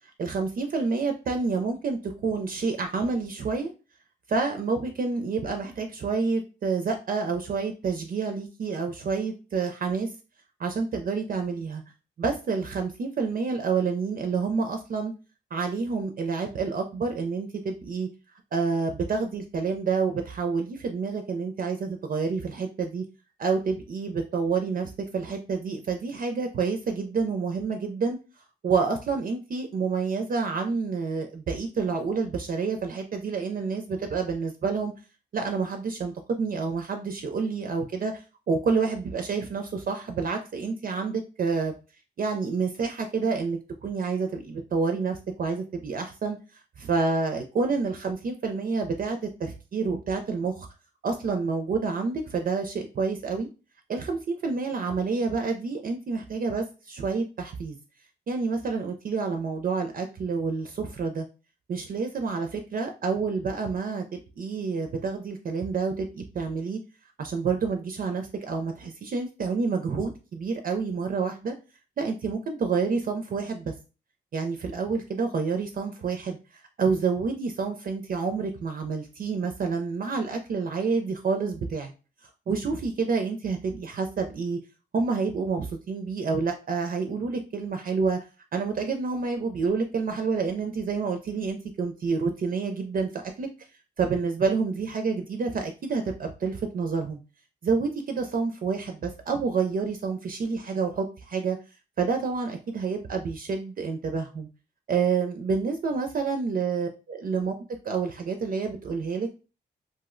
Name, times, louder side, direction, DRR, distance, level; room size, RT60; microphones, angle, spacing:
voice 1, 0.2-3.7 4.3-10.1 10.6-11.8 12.2-15.1 15.5-18.1 18.5-23.0 23.4-28.2 28.6-34.9 35.3-38.2 38.5-41.7 42.2-46.4 46.8-50.7 51.0-53.5 53.9-57.8 58.3-61.2 61.7-64.0 64.4-66.8 67.2-71.5 72.0-73.7 74.3-81.9 82.5-84.6 84.9-88.2 88.5-93.5 94.0-97.2 97.6-101.6 102.0-104.5 104.9-107.6 107.8-109.3, right 4 dB, 50° right, 5 dB, 0.4 m, -28 dB
2.6 x 2.0 x 3.6 m, 0.32 s
wide cardioid pair, 125°, 19 cm